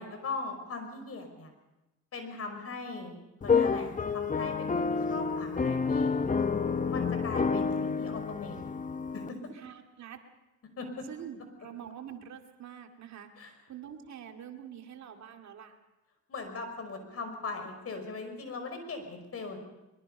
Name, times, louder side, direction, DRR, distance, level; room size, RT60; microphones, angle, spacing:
voice 1, 0.0-1.5 2.1-6.1 6.9-8.6 9.1-9.4 10.8-10.9 13.4-13.5 16.3-19.6, left 3 dB, 50° left, 6 dB, 5.5 m, -39 dB
sound 1, 3.4-9.3, left 5 dB, 25° left, 1.0 m, -29 dB
voice 2, 9.5-10.2 11.1-15.8, right 9 dB, 65° right, 4 dB, 2.3 m, -46 dB
23.0 x 23.0 x 5.5 m, 1.0 s
cardioid pair, 90°, 30 cm